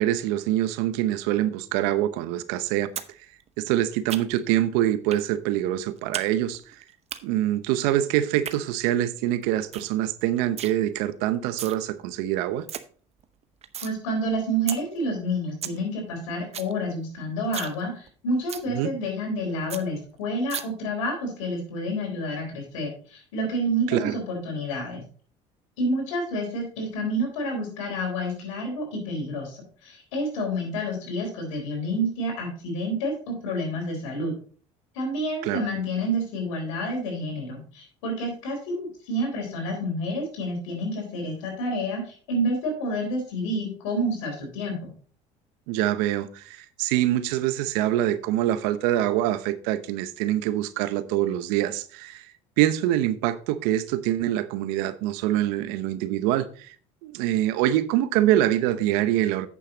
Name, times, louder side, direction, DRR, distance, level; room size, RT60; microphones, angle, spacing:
voice 1, 0.0-2.9 3.6-6.6 7.2-12.7 18.7-18.9 23.9-24.1 35.4-35.6 45.7-52.3 52.6-56.7 57.0-59.5, right 13 dB, 80° right, 0.8 m, -25 dB
sound 1, 3.0-3.1 3.4-4.5 5.1-5.3 5.6-6.3 6.5-7.2 8.2-8.6 9.0-9.1 9.4-9.5 9.7-9.9 10.2-10.7 11.3-11.8 12.2-12.3 12.5-12.8 13.2-13.9 14.3-14.4 14.7-14.8 15.2-15.3 15.4-15.8 16.1-16.2 16.4-16.7 17.0-17.1 17.4-17.8 18.1-18.2 18.5-18.7 19.1-19.2 19.4-19.5 19.7-19.8 20.5-20.6, right 9 dB, 40° right, 0.8 m, -34 dB
voice 2, 13.8-25.0 25.8-34.3 34.9-44.9, equal, 90° left, 3.8 m, -29 dB
8.6 x 7.0 x 3.9 m
supercardioid pair, 85°, 16 cm